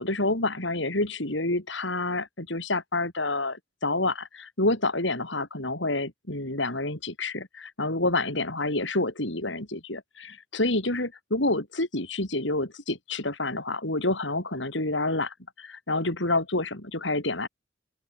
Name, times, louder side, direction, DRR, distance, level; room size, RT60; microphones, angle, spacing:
voice 1, 0.0-17.5, left 2 dB, 65° left, 5.6 m, -28 dB
open air
head